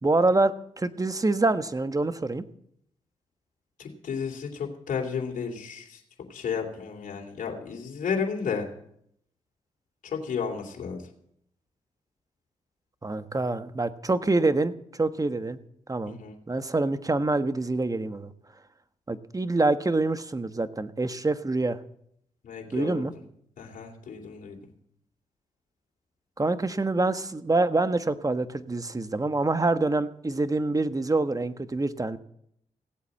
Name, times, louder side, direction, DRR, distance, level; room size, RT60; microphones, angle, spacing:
voice 1, 0.0-2.4 13.0-15.6 15.9-16.2 16.5-18.3 19.1-21.8 22.7-23.1 26.4-32.2, right 2 dB, 25° right, 11 dB, 1.3 m, -26 dB
voice 2, 3.8-6.0 6.3-8.7 10.0-11.0 16.1-16.4 22.4-23.0 23.6-24.6, left 6 dB, 70° left, 0 dB, 2.8 m, -32 dB
17.0 x 8.3 x 7.6 m, 0.72 s
supercardioid pair, 50°, 14 cm